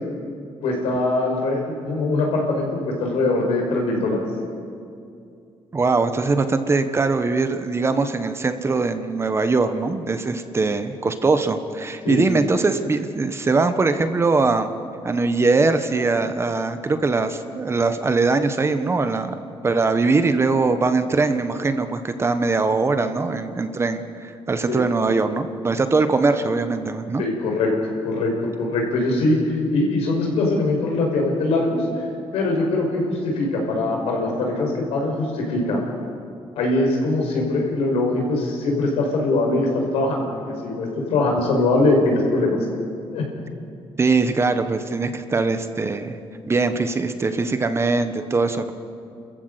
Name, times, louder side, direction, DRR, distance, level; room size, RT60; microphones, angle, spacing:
voice 1, 0.6-4.3 12.0-12.3 24.7-24.8 27.2-27.7 28.0-32.0 32.3-35.8 36.6-40.3 40.6-42.6 43.1-43.2, left 2 dB, 90° left, 0 dB, 5.7 m, -22 dB
voice 2, 5.7-14.7 15.0-27.2 44.0-46.2 46.5-48.7, right 3 dB, 25° right, 9 dB, 1.3 m, -21 dB
29.0 x 14.5 x 8.2 m, 2.5 s
cardioid pair, 115°, 10 cm